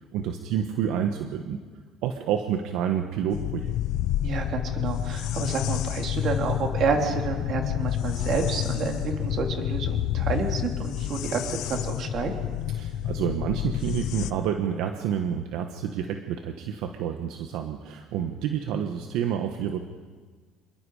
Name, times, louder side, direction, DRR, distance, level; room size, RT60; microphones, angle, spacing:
voice 1, 0.1-1.6 2.0-3.7 12.7-19.8, right 9 dB, 75° right, 5 dB, 1.3 m, -29 dB
sound 1, 3.3-14.3, left 12 dB, 70° left, 0.8 m, -29 dB
voice 2, 4.2-12.3, right 5 dB, 50° right, 2 dB, 3.3 m, -29 dB
27.0 x 21.5 x 5.0 m, 1.5 s
cardioid pair, 130°, 0 cm